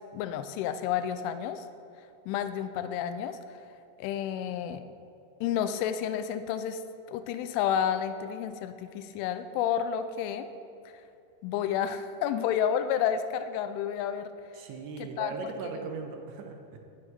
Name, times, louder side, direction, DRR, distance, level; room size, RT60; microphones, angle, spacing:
voice 1, 0.1-1.6 2.3-3.4 4.0-4.8 5.4-6.8 7.1-10.5 11.4-14.3 15.0-15.3, left 9 dB, 85° left, 11 dB, 3.0 m, -30 dB
voice 2, 14.5-16.8, right 4 dB, 80° right, 4 dB, 3.0 m, -38 dB
11.0 x 6.5 x 9.1 m, 2.7 s
omnidirectional pair, 5.6 m